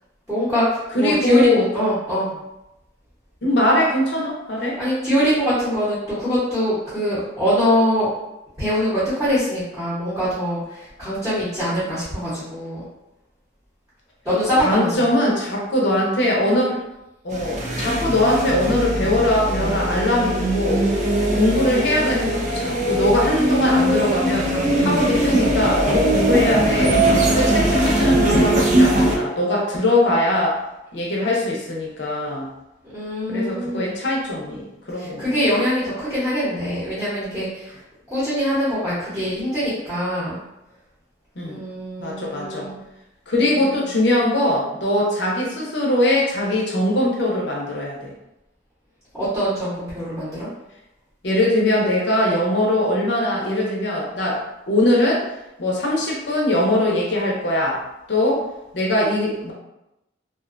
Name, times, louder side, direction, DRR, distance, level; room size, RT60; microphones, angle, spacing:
voice 1, 0.3-1.5 1.7-2.3 4.8-8.1 8.6-12.8 14.2-15.1 32.9-34.0 34.9-37.8 38.1-40.4 41.4-42.8 43.4-43.9 49.1-50.5, equal, 10° right, -13 dB, 0.8 m, -23 dB
voice 2, 0.9-1.7 3.4-4.8 11.7-11.8 14.6-16.8 17.2-20.8 21.3-27.0 27.3-30.6 30.9-32.5 33.3-35.2 41.4-41.6 42.0-42.7 43.3-48.1 51.2-54.4 54.7-55.3 55.6-57.8 58.1-58.4 58.7-59.5, left 1 dB, 60° left, -2 dB, 0.6 m, -21 dB
sound 1, 17.3-29.2, right 1 dB, 40° right, 0.3 m, -20 dB
2.4 x 2.2 x 2.5 m, 0.91 s
head